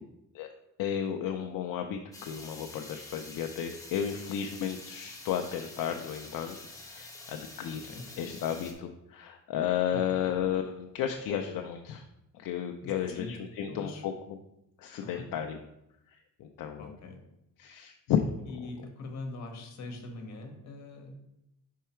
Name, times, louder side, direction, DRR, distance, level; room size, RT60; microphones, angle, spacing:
voice 1, 0.8-6.6 6.9-7.8 8.2-12.0 12.3-14.4 14.8-15.6 16.1-16.9 17.6-18.2, left 9 dB, 75° left, 4 dB, 0.6 m, -33 dB
sound 1, 2.1-8.7, left 2 dB, 10° left, 1.0 m, -47 dB
voice 2, 12.8-13.4 13.6-14.0 15.0-15.2 16.8-17.2 18.5-21.1, left 2 dB, 50° left, 4 dB, 1.4 m, -42 dB
5.6 x 4.7 x 4.4 m, 0.85 s
cardioid pair, 145°, 34 cm